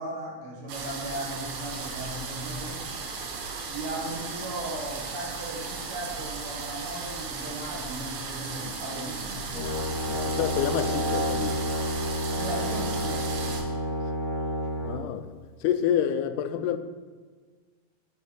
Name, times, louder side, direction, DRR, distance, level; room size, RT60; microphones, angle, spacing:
voice 1, 0.0-2.8 3.7-9.5 12.3-13.6, right 2 dB, 55° right, -3 dB, 2.0 m, -37 dB
sound 1, 0.7-13.6, right 4 dB, 75° right, 1.2 m, -36 dB
Brass instrument, 9.5-15.0, equal, 30° left, 1.0 m, -29 dB
voice 2, 10.1-11.6 14.8-15.3 15.6-16.8, left 9 dB, 90° left, 10 dB, 2.1 m, -28 dB
8.1 x 5.6 x 4.0 m, 1.5 s
omnidirectional pair, 3.5 m